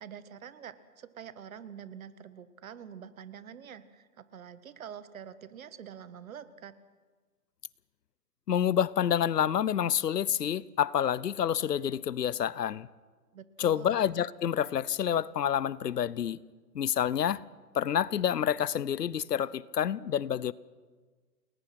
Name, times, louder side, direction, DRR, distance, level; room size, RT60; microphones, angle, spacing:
voice 1, 0.0-6.7 13.3-14.0, right 8 dB, 55° right, 1.7 m, -46 dB
voice 2, 8.5-12.9 13.6-16.4 16.7-17.4 17.7-20.5, left 9 dB, 75° left, 0.9 m, -28 dB
30.0 x 20.0 x 6.0 m
hypercardioid pair, 145°, 49 cm